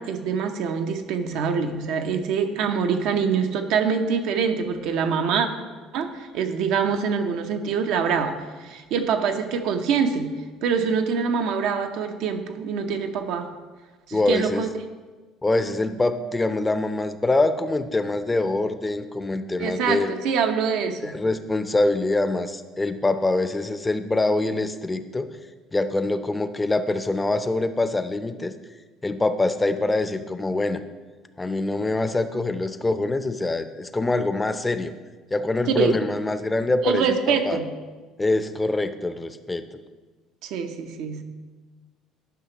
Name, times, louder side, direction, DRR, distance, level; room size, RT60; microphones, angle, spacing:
voice 1, 0.0-5.5 5.9-10.3 10.6-13.5 14.1-14.7 19.6-21.2 35.8-36.0 36.8-37.7 40.4-41.2, right 6 dB, 70° right, 6 dB, 0.7 m, -25 dB
voice 2, 14.1-14.7 15.4-20.1 21.0-25.3 25.7-28.5 29.0-30.8 31.4-34.9 35.3-37.6 38.2-39.8, left 2 dB, 15° left, 10 dB, 0.5 m, -24 dB
11.0 x 5.7 x 2.9 m, 1.4 s
supercardioid pair, 85°, 0 cm